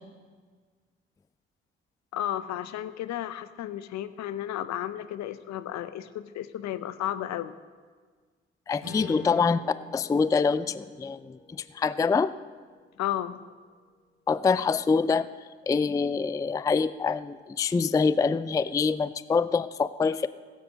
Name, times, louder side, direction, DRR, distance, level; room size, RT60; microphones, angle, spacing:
voice 1, 2.1-7.6 9.0-9.1 13.0-13.4, left 12 dB, 60° left, 13 dB, 0.7 m, -33 dB
voice 2, 8.7-9.6 9.9-12.3 14.3-15.3 15.7-20.3, left 5 dB, 10° left, 16 dB, 0.4 m, -25 dB
Strum, 8.8-13.4, left 4 dB, 85° left, 3.5 m, -46 dB
16.0 x 8.0 x 6.5 m, 1.5 s
hypercardioid pair, 45°, 31 cm